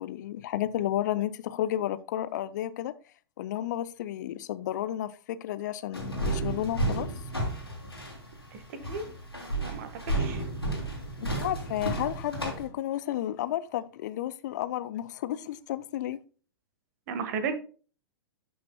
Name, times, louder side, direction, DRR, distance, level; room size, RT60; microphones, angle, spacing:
voice 1, 0.0-2.9 3.4-7.1 11.2-16.2, left 12 dB, 50° left, 0.6 m, -32 dB
sound 1, 5.9-12.6, right 1 dB, 90° left, 2.9 m, -32 dB
voice 2, 9.6-10.4 17.1-17.5, right 5 dB, 45° right, 1.4 m, -34 dB
12.0 x 6.0 x 2.2 m
figure-of-eight pair, 105°, 12 cm